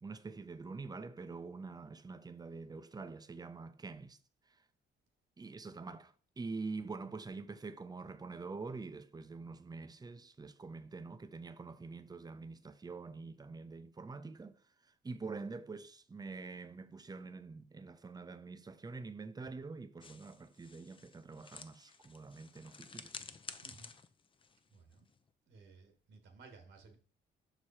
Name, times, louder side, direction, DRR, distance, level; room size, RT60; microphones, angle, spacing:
voice 1, 0.0-4.2 5.4-14.6 15.0-23.1, right 4 dB, 20° right, 0.6 m, -46 dB
sound 1, 20.0-25.3, left 5 dB, 25° left, 0.5 m, -52 dB
voice 2, 23.6-23.9 24.7-25.1 25.4-27.0, right 4 dB, 70° right, 1.7 m, -57 dB
5.9 x 4.9 x 4.3 m
cardioid pair, 90°, 20 cm